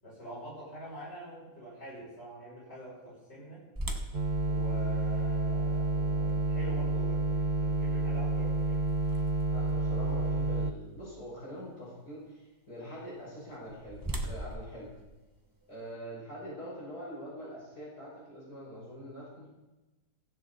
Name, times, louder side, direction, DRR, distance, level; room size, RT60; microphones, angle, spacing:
voice 1, 0.0-3.6 4.4-8.8, equal, 40° left, -7 dB, 7.2 m, -46 dB
sound 1, 3.8-9.7 10.3-10.4 11.0-11.2 13.3-15.9, right 1 dB, 15° right, 1.1 m, -42 dB
sound 2, 4.1-10.7, right 2 dB, 40° right, 0.7 m, -29 dB
voice 2, 9.5-14.0 14.2-14.9 15.7-19.5, equal, 70° left, -6 dB, 6.8 m, -44 dB
17.0 x 15.0 x 4.2 m, 1.1 s
omnidirectional pair, 1.8 m